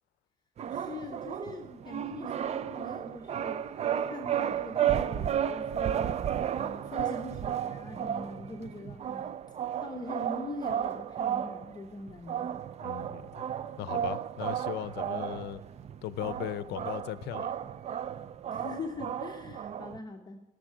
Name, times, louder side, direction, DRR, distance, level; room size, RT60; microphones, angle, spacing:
sound 1, 0.6-20.0, right 9 dB, 40° right, 0.5 m, -33 dB
voice 1, 0.7-3.7 4.0-9.3 9.8-12.5 18.5-20.4, left 2 dB, 25° left, 1.0 m, -42 dB
voice 2, 12.8-13.4 13.8-15.6 16.0-17.5, left 13 dB, 75° left, 0.6 m, -37 dB
13.0 x 6.7 x 8.8 m
cardioid pair, 110°, 17 cm